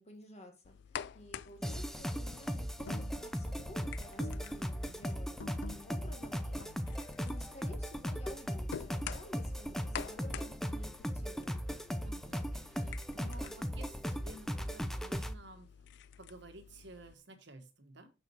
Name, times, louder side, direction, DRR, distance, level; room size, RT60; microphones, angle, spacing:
voice 1, 0.0-6.6 7.2-11.6, left 1 dB, 35° left, 1.8 m, -53 dB
sound 1, 0.6-17.1, left 8 dB, 65° left, 0.4 m, -50 dB
sound 2, 1.6-15.3, equal, ahead, 0.5 m, -38 dB
sound 3, 1.7-1.9 2.3-3.3 3.6-4.6 4.8-7.1, left 2 dB, 90° left, 0.7 m, -50 dB
voice 2, 12.0-15.7 16.2-18.1, right 1 dB, 65° right, 1.4 m, -53 dB
6.5 x 6.2 x 4.4 m
head